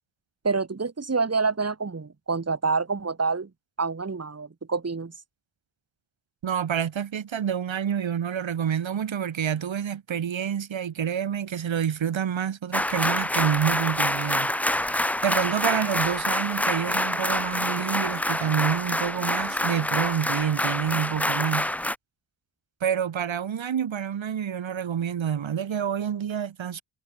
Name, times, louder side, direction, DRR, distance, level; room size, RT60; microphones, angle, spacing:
voice 1, 0.4-3.5 3.8-5.1, right 4 dB, 30° right, 5.7 m, -27 dB
voice 2, 6.4-14.9 15.2-21.7 22.8-26.8, right 8 dB, 65° right, 5.8 m, -28 dB
sound 1, 12.7-22.0, left 1 dB, 5° left, 0.5 m, -26 dB
cardioid pair, 95°, 49 cm